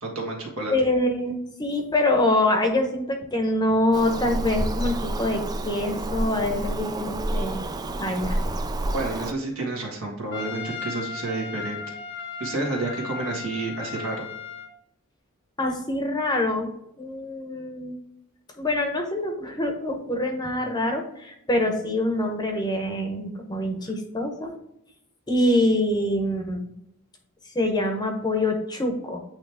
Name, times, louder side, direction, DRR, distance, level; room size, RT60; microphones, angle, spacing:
voice 1, 0.0-0.7 8.9-12.0 12.4-14.3, right 2 dB, 70° right, 0 dB, 1.8 m, -30 dB
voice 2, 0.7-7.6 8.0-8.4 15.6-16.7 17.0-18.0 18.6-24.5 25.3-26.6 27.5-29.2, left 1 dB, 20° left, 4 dB, 0.9 m, -25 dB
Bird vocalization bird call bird song, 3.9-9.3, right 1 dB, 20° right, 0.3 m, -29 dB
Trumpet, 10.3-14.7, left 6 dB, 50° left, 0.8 m, -36 dB
8.9 x 3.1 x 3.5 m, 0.80 s
head